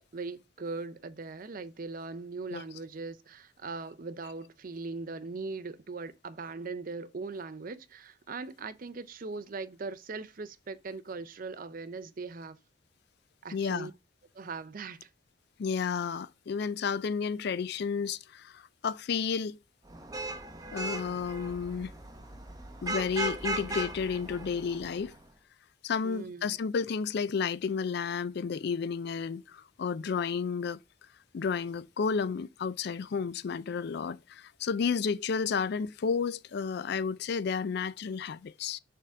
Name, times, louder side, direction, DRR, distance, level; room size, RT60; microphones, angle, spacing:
voice 1, 0.1-12.6 13.4-13.9 14.3-15.1 26.0-26.6, right 4 dB, 45° right, 0.5 m, -40 dB
voice 2, 13.5-13.9 15.6-19.6 20.7-21.9 22.8-25.1 25.8-30.8 31.3-38.8, left 6 dB, 55° left, 0.3 m, -32 dB
Vehicle horn car horn honking / Traffic noise roadway noise, 19.9-25.2, right 2 dB, 20° right, 0.8 m, -37 dB
6.7 x 3.6 x 4.6 m
head